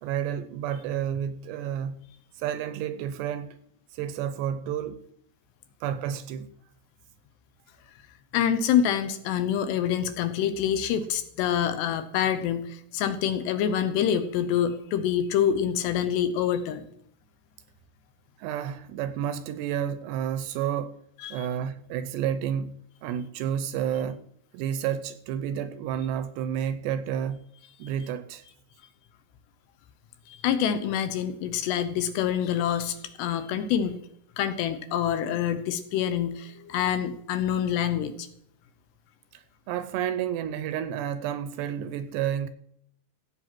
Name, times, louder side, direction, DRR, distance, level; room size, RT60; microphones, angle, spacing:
voice 1, 0.0-2.1 2.3-3.6 3.9-5.1 5.8-6.5 18.4-21.0 21.3-24.3 24.5-27.5 27.8-28.4 39.3-42.5, right 9 dB, 80° right, 2.6 m, -30 dB
voice 2, 8.3-16.9 21.2-21.5 30.3-34.0 34.4-38.3, left 9 dB, 75° left, 2.8 m, -26 dB
15.5 x 7.8 x 6.0 m
omnidirectional pair, 5.3 m